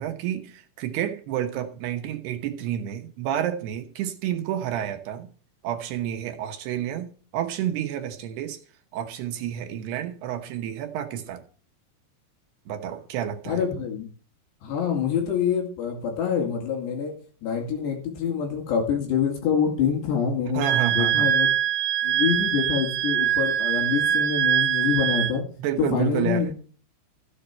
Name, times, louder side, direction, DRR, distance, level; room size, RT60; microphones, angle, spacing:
voice 1, 0.0-5.3 5.6-8.6 8.9-11.4 12.7-13.6 20.5-21.3 25.6-26.5, right 10 dB, 70° right, 5 dB, 2.7 m, -30 dB
voice 2, 13.5-14.1 14.6-17.1 17.4-20.6 20.9-21.5 22.0-25.4 25.9-26.5, left 7 dB, 65° left, 2 dB, 4.1 m, -26 dB
Wind instrument woodwind instrument, 20.6-25.4, right 10 dB, 90° right, 3.7 m, -23 dB
14.0 x 8.3 x 4.4 m, 0.41 s
omnidirectional pair, 5.6 m